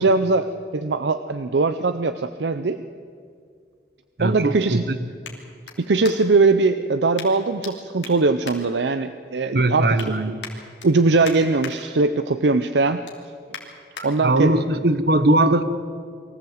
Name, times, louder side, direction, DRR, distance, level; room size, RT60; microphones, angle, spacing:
voice 1, 0.0-2.8 4.2-4.8 5.8-10.4 10.8-13.0 14.0-14.5, right 3 dB, 75° right, 10 dB, 0.6 m, -21 dB
sound 1, 2.8-6.5 7.1-7.7 8.0-9.3 9.7-10.1 10.4-11.7 12.2-12.4 12.8-14.1 14.6-14.7, left 6 dB, 85° left, 2.9 m, -40 dB
voice 2, 4.2-5.0 9.5-10.3 14.0-15.6, right 1 dB, 60° right, 12 dB, 1.1 m, -20 dB
23.5 x 15.0 x 7.9 m, 2.1 s
head